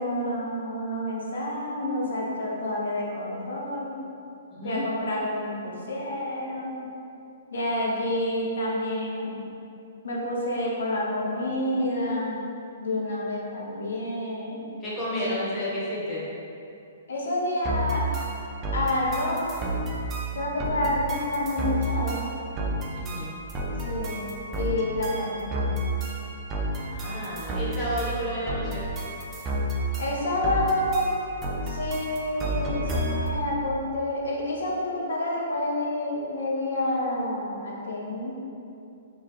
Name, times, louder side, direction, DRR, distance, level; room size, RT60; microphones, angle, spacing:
voice 1, 0.0-4.0 4.6-6.8 7.5-9.4 10.0-12.4 12.8-14.7 15.2-15.3 17.1-18.0 18.7-19.6 20.3-22.3 23.9-25.7 30.0-31.1 31.7-38.3, left 1 dB, 80° left, -4 dB, 0.9 m, -28 dB
voice 2, 4.5-4.9 14.8-16.2 22.9-23.3 26.7-28.8, equal, 15° left, -8 dB, 1.0 m, -32 dB
sound 1, 17.6-33.4, right 1 dB, 20° right, 0.4 m, -31 dB
3.9 x 3.1 x 2.9 m, 2.6 s
hypercardioid pair, 155°, 0 cm